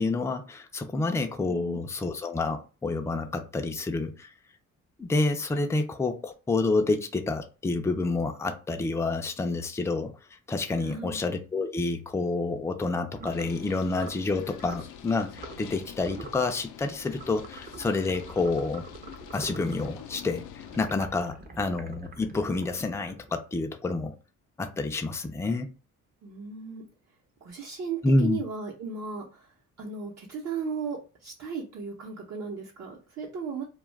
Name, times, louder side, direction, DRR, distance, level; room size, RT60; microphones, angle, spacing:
voice 1, 0.0-4.3 5.0-10.1 10.5-18.8 19.3-24.1 24.6-25.7 28.0-28.4, left 3 dB, 10° left, 6 dB, 0.4 m, -28 dB
voice 2, 1.4-1.8 10.8-11.2 26.2-26.9 27.4-29.5 29.8-33.6, right 5 dB, 55° right, -4 dB, 0.9 m, -36 dB
sound 1, 13.1-13.5 13.9-14.2 14.6-14.9 15.3-15.7 16.0-16.4 17.1-20.0 20.7-23.5, right 3 dB, 30° right, 0.6 m, -45 dB
sound 2, 13.3-20.9, left 9 dB, 90° left, 0.5 m, -46 dB
2.3 x 2.2 x 3.2 m, 0.33 s
cardioid pair, 90°, 30 cm